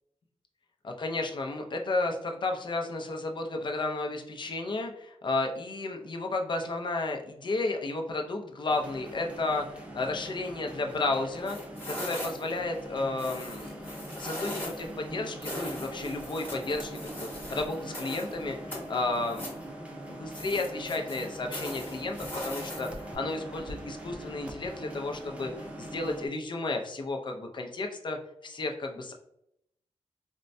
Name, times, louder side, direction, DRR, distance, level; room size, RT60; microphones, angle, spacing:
voice 1, 0.8-11.6 11.9-13.7 14.1-19.5 20.1-22.2 22.4-28.2 28.4-29.1, left 2 dB, 45° left, 3 dB, 0.5 m, -32 dB
sound 1, 8.7-26.3, right 1 dB, 10° right, 0.4 m, -42 dB
sound 2, 11.4-12.6 13.2-14.9 15.4-18.3 18.7-19.6 20.3-23.1, left 1 dB, 15° left, 0.9 m, -40 dB
4.3 x 2.1 x 2.5 m, 0.77 s
wide cardioid pair, 175°, 11 cm